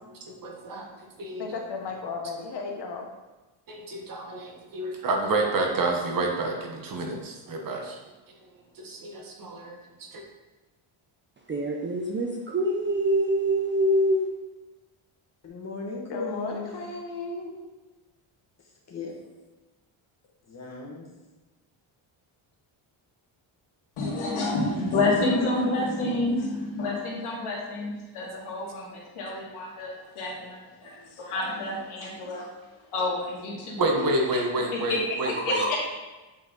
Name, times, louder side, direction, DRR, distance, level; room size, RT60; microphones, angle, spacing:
voice 1, 0.3-0.9 1.2-1.5 3.7-8.0 8.8-10.2 28.2-28.3 33.8-35.8, right 2 dB, 40° right, 1 dB, 1.1 m, -29 dB
voice 2, 1.4-3.1 16.1-17.6, left 4 dB, 55° left, 2 dB, 0.9 m, -35 dB
voice 3, 11.5-14.3 35.5-35.8, right 1 dB, 25° right, 0 dB, 0.5 m, -25 dB
voice 4, 15.4-16.8 18.9-19.1 20.5-21.1 25.5-26.2, left 3 dB, 30° left, -2 dB, 1.5 m, -37 dB
voice 5, 24.0-32.5 32.9-34.4 34.7-35.8, left 2 dB, 75° left, -3 dB, 2.1 m, -29 dB
8.2 x 4.6 x 3.7 m, 1.2 s
cardioid pair, 170°, 50 cm